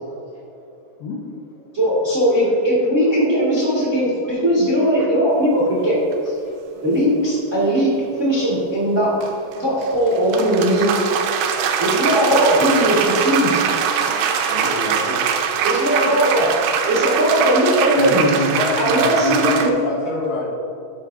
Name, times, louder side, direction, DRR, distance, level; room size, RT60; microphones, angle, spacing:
voice 1, 0.0-1.2 1.5-1.6 4.2-5.1 6.2-6.8 8.4-8.5 11.4-11.6 13.6-14.6 16.9-17.0, left 3 dB, 75° left, -5 dB, 2.4 m, -40 dB
voice 2, 1.7-6.0 6.8-7.9 8.2-9.1 9.6-10.9 11.8-13.6 15.6-16.5 16.9-18.3 18.8-19.8, equal, 40° right, -8 dB, 1.0 m, -18 dB
sound 1, 6.1-6.2 9.2-19.7, right 7 dB, 85° right, 2.9 m, -22 dB
voice 3, 14.5-15.2 18.0-20.5, left 1 dB, 60° left, -11 dB, 3.6 m, -25 dB
12.0 x 6.3 x 2.7 m, 2.6 s
omnidirectional pair, 4.9 m